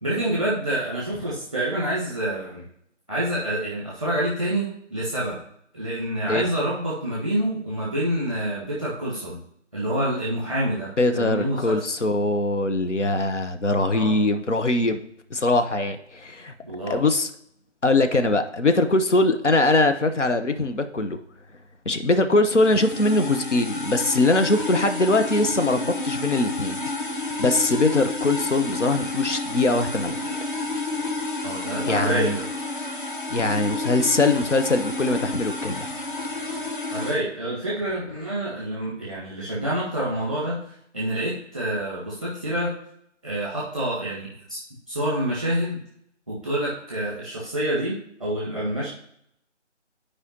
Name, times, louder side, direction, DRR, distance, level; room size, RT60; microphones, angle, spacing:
voice 1, 0.0-2.6 3.1-5.4 5.7-9.4 9.7-11.8 13.9-14.2 16.6-17.0 31.4-32.4 36.9-42.7 43.2-44.6 44.9-45.8 46.3-48.9, right 1 dB, 5° left, -7 dB, 0.9 m, -27 dB
voice 2, 11.0-15.0 15.3-16.5 16.9-17.3 17.8-21.2 21.8-26.8 27.1-30.4 31.9-32.4 33.3-35.9, left 2 dB, 75° left, 8 dB, 0.9 m, -22 dB
sound 1, 22.5-37.2, left 2 dB, 45° left, 1.0 m, -30 dB
11.0 x 4.9 x 2.9 m, 0.71 s
figure-of-eight pair, 160°, 36 cm